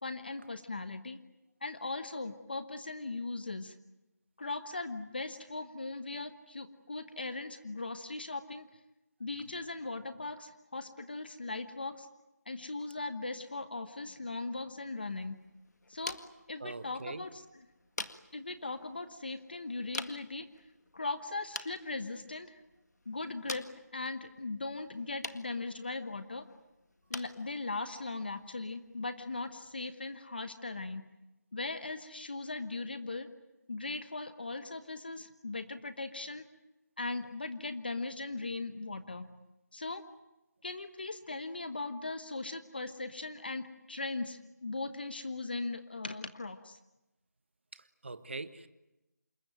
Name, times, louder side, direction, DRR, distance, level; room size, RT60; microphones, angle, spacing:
voice 1, 0.0-1.2 1.6-3.7 4.4-8.7 9.2-12.1 12.5-15.4 15.9-16.2 16.5-17.6 18.3-20.5 20.9-22.6 23.1-26.4 27.1-31.0 31.5-33.3 33.7-36.4 37.0-39.3 39.7-40.0 40.6-46.8, left 3 dB, 35° left, 1.1 m, -39 dB
sound 1, 14.8-29.9, left 2 dB, 70° left, 1.9 m, -48 dB
voice 2, 16.6-17.2 47.7-48.7, right 3 dB, 40° right, 1.3 m, -42 dB
28.0 x 21.5 x 9.3 m
figure-of-eight pair, 180°, 9 cm